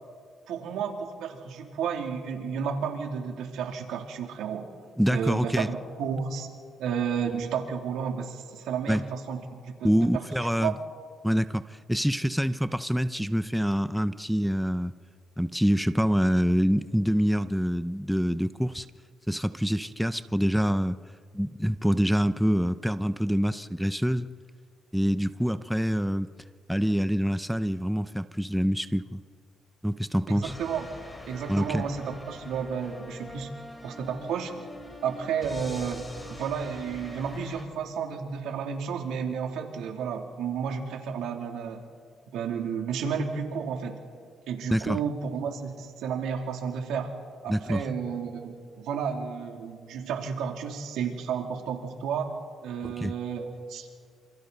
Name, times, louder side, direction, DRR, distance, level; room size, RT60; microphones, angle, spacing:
voice 1, 0.5-4.7 5.1-6.5 6.8-10.2 10.6-10.7 30.3-30.9 31.3-33.5 33.8-34.5 35.0-41.8 42.3-44.0 44.5-47.1 47.4-52.3 52.6-53.9, right 6 dB, 85° right, 2 dB, 2.9 m, -32 dB
voice 2, 5.0-5.7 8.9-9.0 9.8-10.7 11.2-14.9 15.4-18.9 19.3-21.0 21.3-24.3 24.9-26.3 26.7-29.2 29.8-30.6 31.5-31.9 44.7-45.0 47.5-47.9 52.8-53.1, equal, ahead, 12 dB, 0.7 m, -26 dB
sound 1, 30.4-37.6, left 1 dB, 15° left, 3.7 m, -44 dB
28.5 x 27.5 x 4.0 m, 2.1 s
cardioid pair, 90°, 0 cm